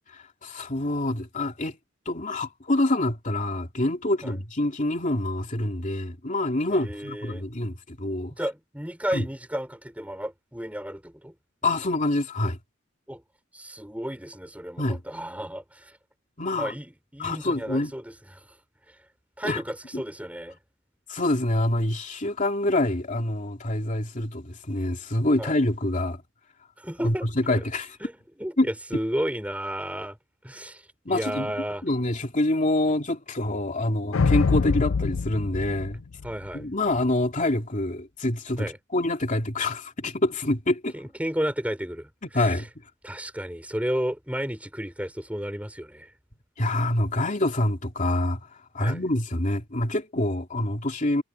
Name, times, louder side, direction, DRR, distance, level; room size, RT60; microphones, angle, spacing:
voice 1, 0.1-1.8 2.0-8.3 9.1-9.2 11.6-12.6 14.8-15.0 16.4-16.7 17.2-17.9 19.4-19.6 19.9-20.0 21.1-26.2 27.0-28.0 28.6-28.7 31.0-31.5 31.8-36.0 36.5-40.9 42.3-42.7 46.6-48.4 48.7-51.2, left 1 dB, 40° left, 2.9 m, -26 dB
voice 2, 6.7-7.5 8.3-11.3 13.1-13.2 13.5-16.0 16.5-18.4 19.4-20.6 25.4-25.5 26.8-27.6 28.0-30.2 30.4-30.8 31.1-31.8 36.2-36.7 38.6-38.8 40.9-42.6 43.0-46.1 48.8-49.0, equal, 5° right, 5.6 m, -33 dB
sound 1, 34.1-36.6, left 4 dB, 80° left, 0.5 m, -24 dB
head